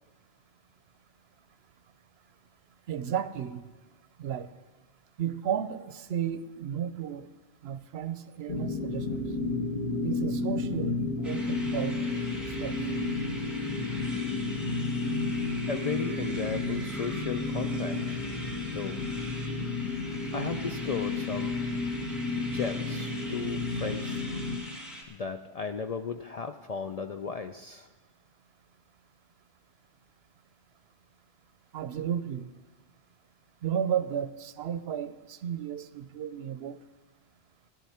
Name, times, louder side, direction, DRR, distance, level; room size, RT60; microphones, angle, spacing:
voice 1, 2.9-3.6 4.2-4.5 5.2-7.3 7.6-9.3 10.0-12.0 12.5-12.8 31.7-32.5 33.6-36.8, right 9 dB, 75° right, 13 dB, 0.8 m, -33 dB
sound 1, 8.5-24.6, left 3 dB, 40° left, 1.6 m, -32 dB
sound 2, 11.2-25.0, equal, ahead, 1.9 m, -43 dB
voice 2, 15.7-18.2 18.7-19.0 20.3-21.6 22.4-24.3 25.1-27.9, left 5 dB, 55° left, 7 dB, 0.4 m, -35 dB
16.0 x 11.0 x 4.3 m, 1.3 s
omnidirectional pair, 1.1 m